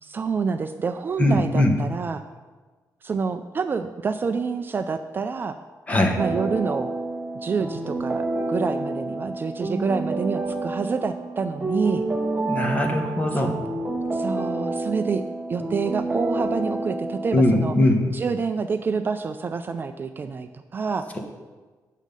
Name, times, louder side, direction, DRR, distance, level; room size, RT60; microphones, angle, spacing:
voice 1, 0.0-2.2 3.0-5.6 6.2-6.9 7.4-12.1 13.3-13.6 14.1-15.2 15.5-17.7 18.1-21.0, right 5 dB, 30° right, 8 dB, 0.4 m, -27 dB
voice 2, 1.2-1.7 5.9-6.2 12.4-13.6 17.3-18.0 21.1-21.2, left 1 dB, 20° left, 3 dB, 1.2 m, -20 dB
sound 1, 6.2-17.8, right 2 dB, 15° right, 0.9 m, -29 dB
9.2 x 7.3 x 5.3 m, 1.3 s
wide cardioid pair, 150°, 7 cm